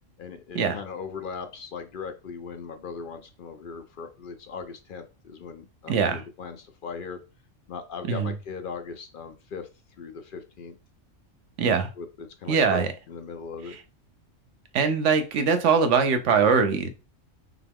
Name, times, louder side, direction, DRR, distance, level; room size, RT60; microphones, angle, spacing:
voice 1, 0.2-7.2 7.7-9.7 10.0-10.7 12.0-13.8, left 5 dB, 60° left, 0.5 m, -38 dB
voice 2, 5.9-6.2 8.1-8.3 11.6-11.9 12.5-12.9 14.7-16.9, right 5 dB, 70° right, 1.0 m, -22 dB
5.8 x 2.3 x 3.4 m
omnidirectional pair, 1.4 m